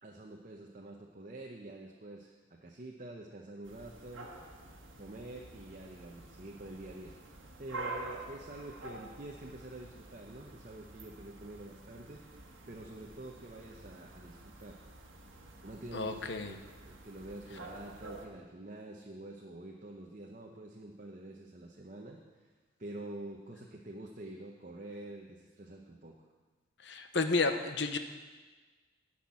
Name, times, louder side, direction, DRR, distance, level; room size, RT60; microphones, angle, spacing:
voice 1, 0.0-2.3 2.6-4.3 5.0-7.1 7.6-12.2 12.7-14.8 15.6-16.6 16.8-22.2 22.8-26.2, right 1 dB, 40° right, 0 dB, 0.8 m, -47 dB
sound 1, 3.6-18.3, right 2 dB, 80° right, 1.5 m, -48 dB
voice 2, 15.9-16.5 26.8-28.0, left 3 dB, 60° left, 8 dB, 0.8 m, -31 dB
10.5 x 6.0 x 8.6 m, 1.3 s
head